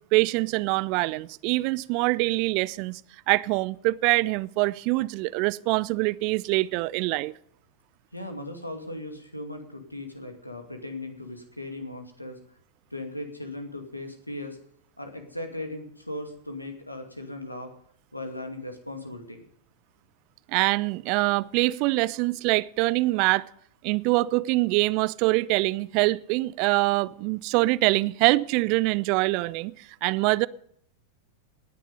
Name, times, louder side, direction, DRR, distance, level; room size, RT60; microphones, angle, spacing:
voice 1, 0.1-3.0 3.3-7.3 20.5-23.5 23.8-30.5, right 22 dB, 45° right, 0.5 m, -24 dB
voice 2, 8.1-12.4 12.9-14.6 15.0-17.7 18.1-19.4, left 1 dB, 85° left, 2.5 m, -38 dB
18.5 x 10.0 x 5.5 m
figure-of-eight pair, 90°, 0 cm